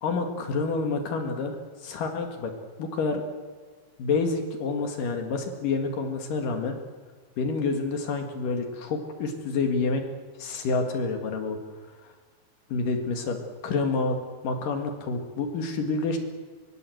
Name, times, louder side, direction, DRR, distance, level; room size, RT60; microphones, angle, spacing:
voice 1, 0.0-1.6 1.8-2.5 2.8-3.3 4.0-6.7 7.4-10.0 10.4-11.6 12.7-14.2 14.4-16.2, left 4 dB, 55° left, 4 dB, 3.1 m, -28 dB
24.0 x 21.0 x 7.9 m, 1.5 s
omnidirectional pair, 5.2 m